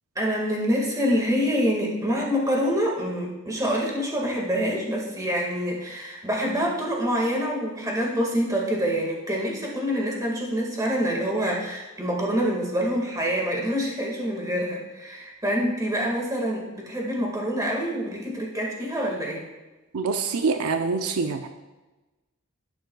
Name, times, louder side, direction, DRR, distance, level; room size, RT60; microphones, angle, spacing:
voice 1, 0.2-19.4, equal, 15° right, -2 dB, 1.7 m, -26 dB
voice 2, 19.9-21.5, right 4 dB, 80° right, 6 dB, 0.6 m, -25 dB
11.5 x 9.1 x 2.3 m, 1.1 s
head